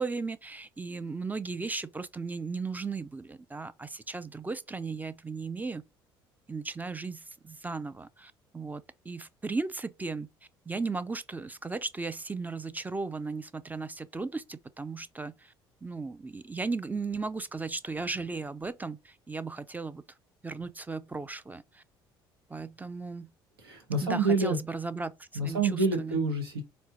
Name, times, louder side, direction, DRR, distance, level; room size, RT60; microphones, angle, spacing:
voice 1, 0.0-5.8 6.5-10.3 10.7-15.5 15.8-20.0 20.4-21.8 22.5-23.3 24.0-26.2, right 4 dB, 15° right, 0.4 m, -36 dB
voice 2, 23.6-24.6 25.3-26.6, right 3 dB, 85° right, 0.9 m, -27 dB
4.3 x 2.0 x 2.8 m
hypercardioid pair, 60°, 12 cm